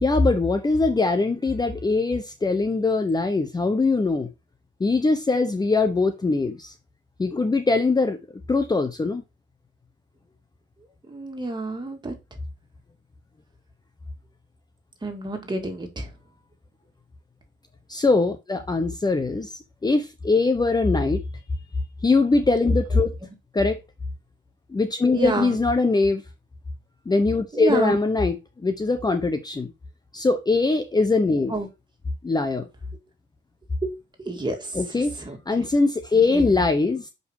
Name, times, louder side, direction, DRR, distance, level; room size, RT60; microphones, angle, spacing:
voice 1, 0.0-4.3 4.8-6.7 7.2-8.2 8.5-9.2 17.9-21.2 22.0-23.1 23.5-23.8 24.7-26.2 27.1-29.7 30.1-31.5 32.2-32.7 34.7-35.2 35.5-37.1, left 3 dB, 20° left, 0.9 m, -22 dB
voice 2, 11.1-12.1 15.0-16.1 25.1-25.6 27.5-28.0 31.5-31.7 33.8-33.9 34.3-34.7 35.2-35.4 36.3-36.5, right 2 dB, 20° right, 2.6 m, -28 dB
6.4 x 5.4 x 4.8 m
cardioid pair, 90°, 20 cm